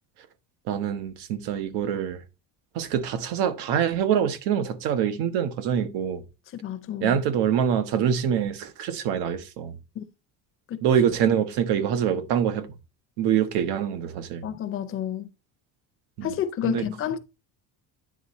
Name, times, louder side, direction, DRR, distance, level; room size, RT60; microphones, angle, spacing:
voice 1, 0.7-2.2 2.7-6.2 7.0-9.8 10.8-12.7 13.2-14.5 16.2-16.3 16.6-16.8, right 8 dB, 90° right, 1.1 m, -25 dB
voice 2, 6.6-7.2 10.0-10.1 10.7-10.8 14.4-15.3 16.2-17.2, left 10 dB, 35° left, 0.5 m, -30 dB
9.5 x 3.6 x 4.1 m
cardioid pair, 170°, 38 cm